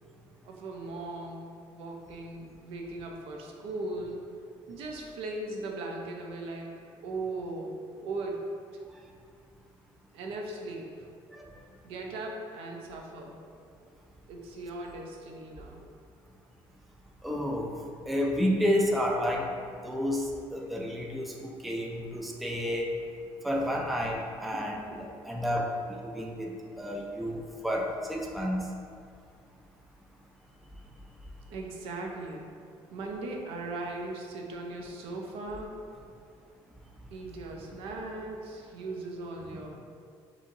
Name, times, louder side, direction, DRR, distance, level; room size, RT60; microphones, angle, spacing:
voice 1, 0.4-4.2 4.7-6.7 7.0-8.5 10.1-11.1 11.8-13.4 14.3-15.9 24.9-25.1 31.5-32.5 32.9-35.8 37.1-39.7, right 2 dB, 75° right, 1 dB, 0.6 m, -38 dB
voice 2, 17.2-17.7 18.1-19.5 19.8-22.9 23.4-24.8 25.2-25.7 26.0-26.5 26.8-28.6 39.5-39.7, equal, ahead, -1 dB, 0.3 m, -30 dB
4.8 x 3.0 x 2.7 m, 2.3 s
cardioid pair, 150°, 10 cm